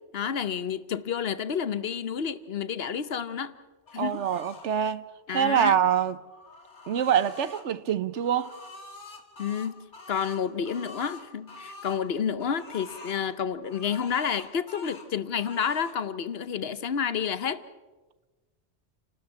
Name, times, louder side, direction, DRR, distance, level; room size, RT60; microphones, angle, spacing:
voice 1, 0.1-3.5 3.9-4.2 5.3-5.8 9.4-9.8 10.1-17.6, left 7 dB, 60° left, 1.0 m, -30 dB
sound 1, 3.9-4.7 6.1-7.6 8.1-12.0 12.4-13.2 13.6-15.1 15.4-16.0, left 3 dB, 80° left, 2.7 m, -46 dB
voice 2, 4.0-6.2 6.9-8.5, right 9 dB, 80° right, 1.2 m, -25 dB
29.0 x 12.5 x 8.5 m
omnidirectional pair, 1.2 m